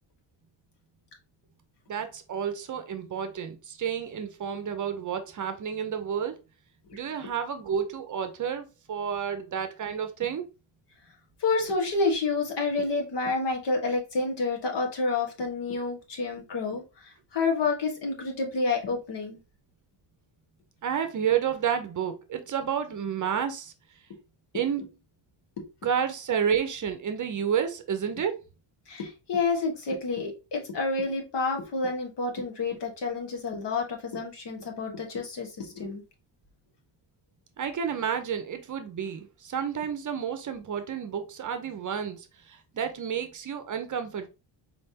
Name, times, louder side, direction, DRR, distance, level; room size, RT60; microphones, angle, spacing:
voice 1, 1.9-6.4 6.9-10.5 20.8-23.7 24.5-24.9 25.8-28.4 37.6-44.3, right 8 dB, 40° right, 0.7 m, -30 dB
voice 2, 11.4-19.4 28.9-36.0, left 3 dB, 60° left, 1.6 m, -29 dB
4.3 x 3.4 x 2.8 m
cardioid pair, 100°, 48 cm